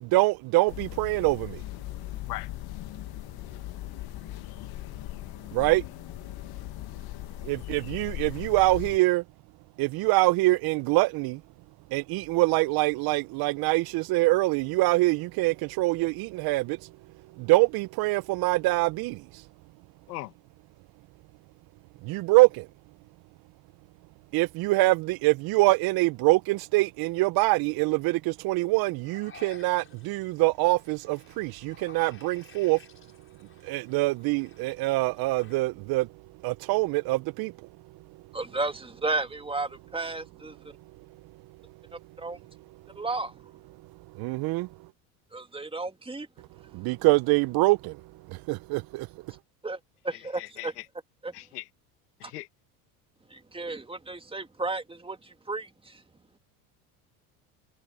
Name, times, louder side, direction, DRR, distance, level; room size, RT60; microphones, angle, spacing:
voice 1, 0.0-1.6 5.5-5.8 7.5-9.2 9.8-11.4 11.9-16.8 17.4-19.2 22.1-22.6 24.3-32.8 33.7-36.1 36.4-37.5 44.2-44.7 46.7-47.9 48.5-49.1, right 21 dB, 55° right, 0.7 m, -24 dB
sound 1, 0.7-9.0, left 16 dB, 50° left, 1.4 m, -39 dB
sound 2, 29.0-35.6, left 6 dB, 25° left, 5.4 m, -54 dB
voice 2, 38.3-40.6 42.2-42.4 43.0-43.4 45.3-46.3 49.6-49.8 50.0-50.7 51.2-51.3 52.2-52.3 53.3-56.0, right 3 dB, 10° right, 2.1 m, -33 dB
voice 3, 50.4-50.7 51.3-51.7 52.2-52.5, left 18 dB, 85° left, 1.6 m, -38 dB
supercardioid pair, 90°, 45 cm